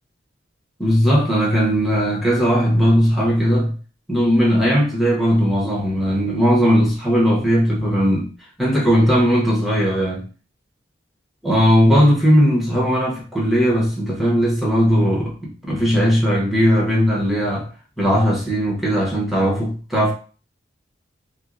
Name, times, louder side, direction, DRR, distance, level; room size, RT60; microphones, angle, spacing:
voice 1, 0.8-3.7 4.1-8.3 8.6-10.2 11.4-17.7 18.0-20.1, equal, ahead, 0.9 m, -18 dB
4.4 x 2.1 x 2.5 m
head